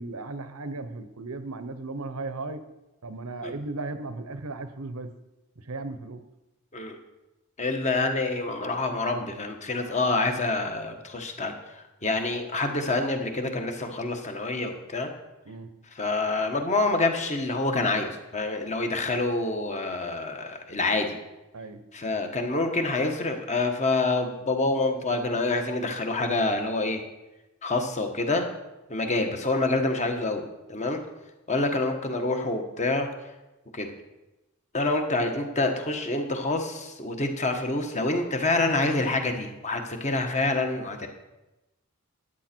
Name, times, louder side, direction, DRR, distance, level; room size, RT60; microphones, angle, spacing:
voice 1, 0.0-2.6 3.0-5.1 5.6-6.2 9.8-9.9 15.4-15.7 21.5-21.8, right 3 dB, 85° right, 11 dB, 1.0 m, -36 dB
voice 2, 7.6-15.1 15.9-21.2 21.9-27.0 27.6-28.5 28.9-31.0 31.5-33.1 33.7-33.9 34.7-41.1, left 2 dB, 30° left, 5 dB, 1.4 m, -27 dB
13.5 x 10.0 x 4.5 m, 0.99 s
head